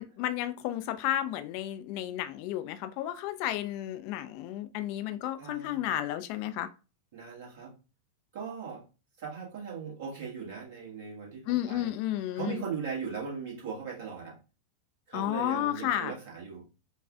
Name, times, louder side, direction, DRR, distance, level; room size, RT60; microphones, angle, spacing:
voice 1, 0.0-6.7 11.5-12.6 15.1-16.1, left 12 dB, 45° left, 0.3 m, -32 dB
voice 2, 5.4-5.9 7.1-7.7 8.3-8.8 9.2-11.9 12.3-14.4 15.1-16.6, right 6 dB, 55° right, 1.5 m, -39 dB
5.3 x 2.3 x 2.3 m
figure-of-eight pair, 90°, 0 cm